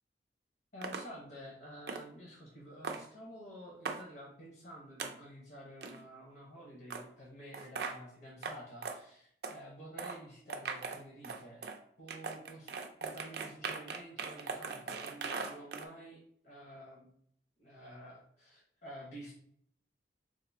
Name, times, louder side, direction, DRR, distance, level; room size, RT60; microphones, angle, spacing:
voice 1, 0.7-11.7 12.0-17.1 17.6-19.3, equal, 60° left, -4 dB, 1.0 m, -50 dB
sound 1, 0.8-1.0 1.9-2.0 2.8-3.0 3.9-4.0 5.0-5.1 5.8-6.0 6.9-7.0 7.5-8.0 8.4-8.6 8.8-9.0 9.4-9.6 10.0-10.2 10.5-11.8 12.1-15.9, right 5 dB, 65° right, 0.4 m, -39 dB
4.5 x 2.6 x 2.7 m, 0.65 s
head